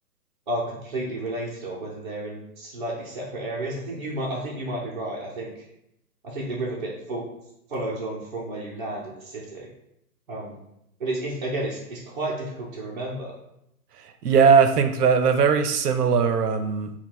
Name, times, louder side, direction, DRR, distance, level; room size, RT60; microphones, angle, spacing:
voice 1, 0.5-5.5 6.2-7.3 7.7-9.7 10.3-10.6 11.0-13.3, right 1 dB, 35° right, -7 dB, 0.5 m, -31 dB
voice 2, 14.2-16.9, right 6 dB, 80° right, 8 dB, 0.7 m, -19 dB
3.6 x 2.3 x 4.4 m, 0.80 s
hypercardioid pair, 160°, 47 cm